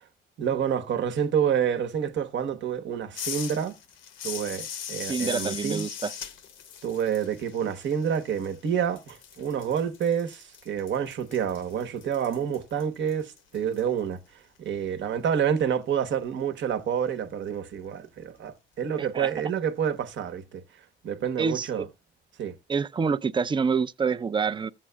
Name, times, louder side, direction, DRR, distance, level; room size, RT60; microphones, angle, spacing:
voice 1, 0.4-3.8 4.2-5.8 6.8-14.2 14.6-20.6 21.0-21.9 22.4-22.6, right 8 dB, 65° right, 1.0 m, -28 dB
sound 1, 3.1-8.7 9.0-13.8, left 8 dB, 75° left, 0.9 m, -39 dB
voice 2, 5.0-6.1 19.0-19.3 21.4-21.9 22.7-24.7, right 5 dB, 25° right, 0.4 m, -27 dB
14.5 x 7.4 x 2.2 m
cardioid pair, 90°, 20 cm